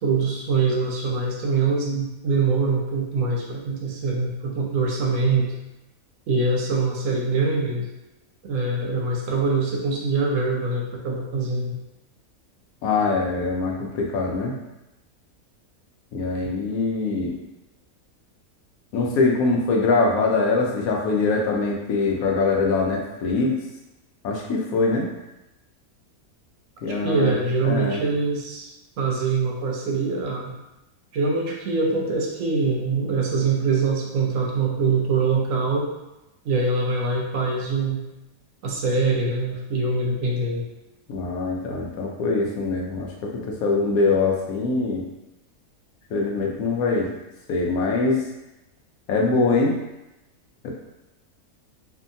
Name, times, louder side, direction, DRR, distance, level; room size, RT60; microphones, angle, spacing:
voice 1, 0.0-5.5 6.3-7.9 8.4-11.8 27.0-28.7 29.0-30.6 31.1-35.9 36.4-38.0 38.6-40.6, right 4 dB, 70° right, -2 dB, 0.9 m, -23 dB
voice 2, 12.8-14.5 16.1-17.4 18.9-23.5 24.2-25.1 26.8-27.3 27.6-28.0 41.1-45.0 46.1-47.1 47.5-48.2 49.1-49.7 50.6-50.7, left 3 dB, 80° left, -1 dB, 1.1 m, -23 dB
2.7 x 2.5 x 2.5 m, 0.95 s
omnidirectional pair, 1.5 m